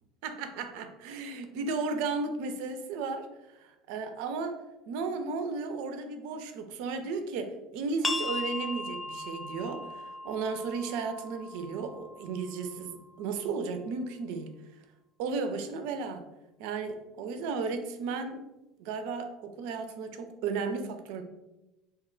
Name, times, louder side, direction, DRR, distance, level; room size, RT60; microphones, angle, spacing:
voice 1, 0.2-4.6 4.9-14.5 15.2-16.2 16.6-18.5 18.8-21.2, right 4 dB, 70° right, 7 dB, 0.3 m, -34 dB
sound 1, 8.0-13.4, left 2 dB, 15° left, 0.3 m, -38 dB
2.7 x 2.2 x 3.6 m, 0.99 s
hypercardioid pair, 75°, 0 cm